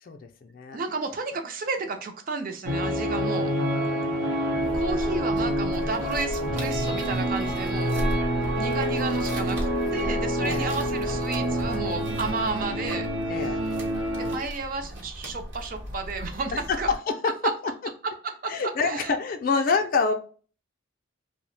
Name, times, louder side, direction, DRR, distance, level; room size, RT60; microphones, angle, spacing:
voice 1, 0.0-0.8 3.9-4.8 10.4-10.7 13.3-13.7 16.5-17.3 18.5-20.1, left 4 dB, 45° left, 6 dB, 0.3 m, -27 dB
voice 2, 0.7-3.5 4.7-8.0 8.6-9.6 9.9-13.1 14.2-16.9 17.4-17.5 18.0-18.5 18.8-19.1, right 3 dB, 45° right, 6 dB, 0.4 m, -32 dB
sound 1, 2.7-14.4, equal, 90° right, 0.7 m, -27 dB
sound 2, 4.6-17.0, equal, 65° right, 0.9 m, -36 dB
2.7 x 2.0 x 3.0 m, 0.40 s
head